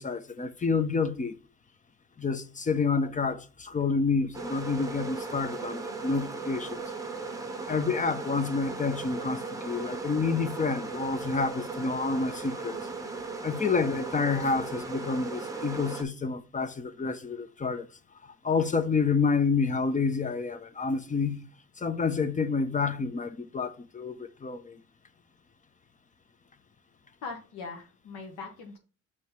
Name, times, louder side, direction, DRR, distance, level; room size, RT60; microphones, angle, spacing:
voice 1, 0.0-1.3 2.2-6.8 7.7-12.8 13.4-17.9 18.2-21.5 21.8-24.8, left 4 dB, 25° left, 0.7 m, -29 dB
sound 1, 4.3-16.0, right 4 dB, 10° right, 0.9 m, -37 dB
voice 2, 27.2-28.8, left 4 dB, 90° left, 1.1 m, -40 dB
5.6 x 3.2 x 5.5 m
cardioid pair, 90°, 30 cm